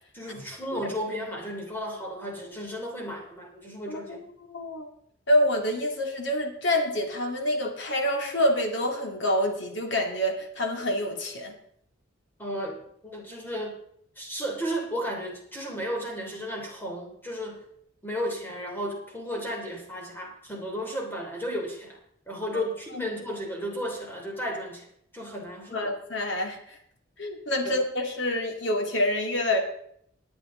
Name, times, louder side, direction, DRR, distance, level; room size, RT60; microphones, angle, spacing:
voice 1, 0.1-4.3 12.4-13.8 14.2-17.6 18.0-22.0 22.3-24.9 25.1-25.9 27.6-27.8, equal, 10° left, 0 dB, 3.0 m, -34 dB
voice 2, 3.9-4.2 4.5-4.9 5.3-11.5 25.7-26.6 27.2-29.6, left 1 dB, 60° left, 3 dB, 2.2 m, -27 dB
18.0 x 9.8 x 3.8 m, 0.69 s
head